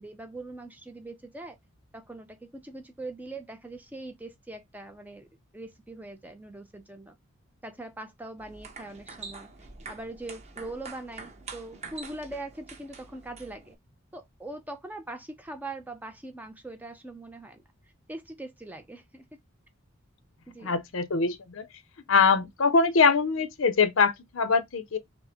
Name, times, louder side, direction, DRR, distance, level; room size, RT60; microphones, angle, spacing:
voice 1, 0.0-1.6 1.9-5.3 5.5-7.2 7.6-13.8 14.1-17.6 18.1-19.2 20.5-20.8, right 2 dB, 10° right, 0.5 m, -42 dB
sound 1, 8.4-13.7, right 4 dB, 30° right, 0.9 m, -45 dB
voice 2, 20.6-21.7 22.1-25.0, left 5 dB, 70° left, 0.7 m, -23 dB
5.8 x 2.1 x 3.5 m
head